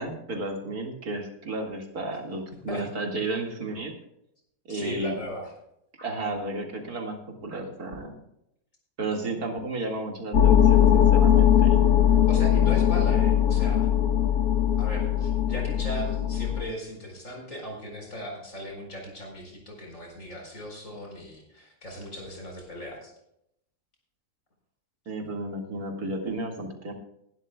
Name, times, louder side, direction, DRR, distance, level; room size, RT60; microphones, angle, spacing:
voice 1, 0.0-4.0 4.7-5.1 6.0-8.2 9.0-11.8 25.1-26.9, right 2 dB, 70° right, 2 dB, 2.6 m, -33 dB
voice 2, 4.7-5.5 12.3-13.9 14.8-23.1, equal, 55° left, 1 dB, 4.7 m, -37 dB
sound 1, 10.3-16.6, left 10 dB, 70° left, 1.4 m, -20 dB
20.0 x 12.0 x 2.3 m, 0.78 s
omnidirectional pair, 1.6 m